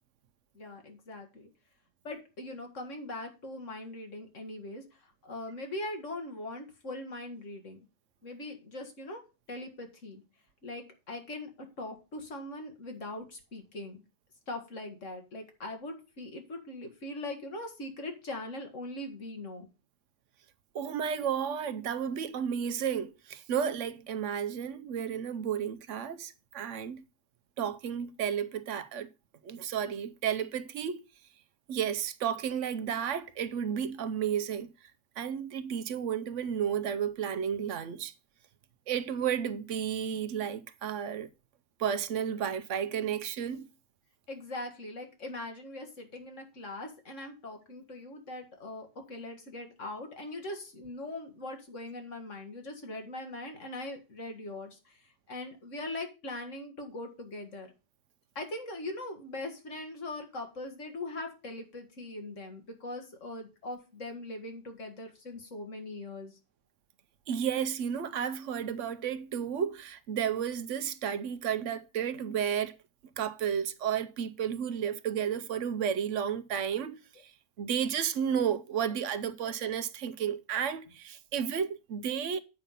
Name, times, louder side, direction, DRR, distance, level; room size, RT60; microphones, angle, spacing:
voice 1, 0.5-1.5 2.0-7.8 8.2-9.2 9.5-10.2 10.6-14.0 14.5-19.7 44.3-55.0 55.3-57.7 58.4-66.3 79.4-79.5, left 2 dB, 75° left, 2.2 m, -41 dB
voice 2, 20.7-27.0 27.6-29.1 29.4-31.0 31.7-34.7 35.2-38.1 38.9-41.3 41.8-43.7 67.3-72.7 73.2-82.4, right 8 dB, 75° right, 1.0 m, -32 dB
8.2 x 5.3 x 5.6 m
omnidirectional pair, 1.3 m